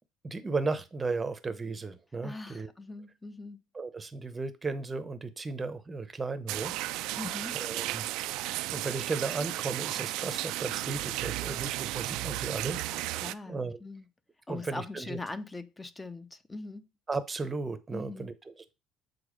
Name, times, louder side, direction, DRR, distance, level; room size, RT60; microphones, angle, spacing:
voice 1, 0.2-2.7 3.7-6.7 7.1-7.2 7.5-8.1 8.7-13.8 14.5-15.2 17.1-18.7, right 3 dB, 20° right, 0.8 m, -35 dB
voice 2, 2.2-3.6 7.2-7.6 12.9-14.0 14.5-16.8 17.9-18.3, left 3 dB, 15° left, 0.6 m, -41 dB
sound 1, 6.5-13.3, right 17 dB, 75° right, 0.3 m, -34 dB
7.0 x 4.1 x 5.1 m
cardioid pair, 120°, 0 cm